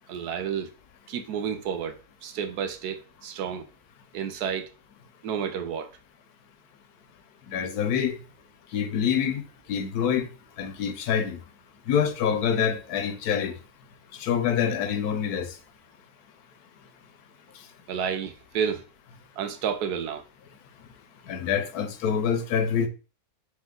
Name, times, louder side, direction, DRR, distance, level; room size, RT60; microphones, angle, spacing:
voice 1, 0.1-0.7 1.1-3.7 4.1-4.7 5.2-5.9 17.9-18.8 19.4-20.2, right 7 dB, 80° right, 1.2 m, -30 dB
voice 2, 7.5-8.2 8.7-9.4 9.7-10.3 10.6-11.4 11.9-13.5 14.2-15.5 21.3-22.9, left 8 dB, 80° left, 1.3 m, -26 dB
4.2 x 3.3 x 3.8 m
omnidirectional pair, 1.6 m